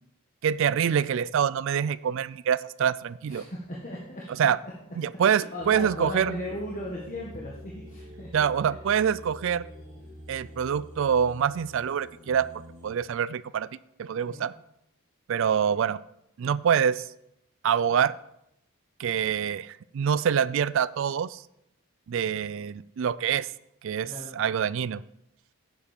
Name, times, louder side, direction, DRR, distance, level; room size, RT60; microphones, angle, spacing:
voice 1, 0.4-3.4 4.4-4.6 5.0-6.4 8.3-9.7 10.3-12.5 12.8-13.7 14.0-14.5 15.3-16.0 16.4-17.1 17.6-18.1 19.0-21.4 22.1-23.5 23.8-25.0, right 8 dB, 60° right, 19 dB, 0.3 m, -25 dB
voice 2, 3.3-4.5 5.3-8.3 8.7-8.8 14.3-14.5 24.0-24.4, left 1 dB, 35° left, -4 dB, 1.6 m, -37 dB
sound 1, 5.6-12.9, equal, 30° right, 3.5 m, -46 dB
9.7 x 7.1 x 5.3 m, 0.79 s
head